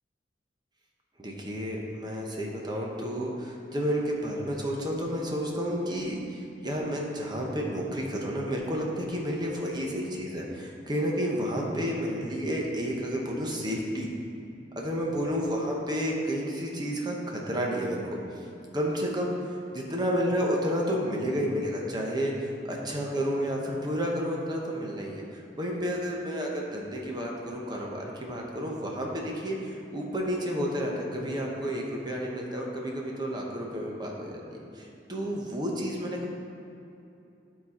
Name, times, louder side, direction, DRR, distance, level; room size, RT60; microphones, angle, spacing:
voice 1, 1.2-14.1 14.8-18.0 18.7-19.3 19.7-22.3 22.7-36.3, equal, 25° right, -1 dB, 1.0 m, -31 dB
12.0 x 4.1 x 4.3 m, 2.7 s
head